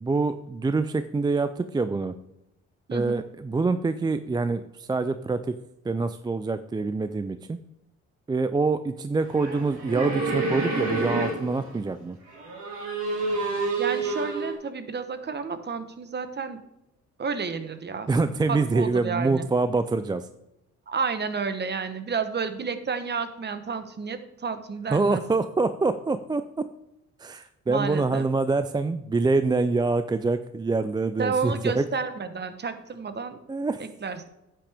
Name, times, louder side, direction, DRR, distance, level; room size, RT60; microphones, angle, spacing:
voice 1, 0.0-2.1 2.9-5.5 5.8-7.6 8.3-12.2 18.1-20.3 24.9-26.6 27.2-31.9 33.5-33.8, right 3 dB, 15° right, 11 dB, 0.3 m, -25 dB
voice 2, 2.9-3.2 13.8-16.6 17.2-18.1 18.5-19.5 20.9-25.2 27.7-28.3 31.2-33.4 33.8-34.3, right 5 dB, 35° right, 10 dB, 1.1 m, -31 dB
sound 1, 9.2-11.8 12.3-14.5, right 3 dB, 85° right, 3.6 m, -28 dB
10.0 x 8.7 x 3.5 m, 0.88 s
cardioid pair, 90°, 30 cm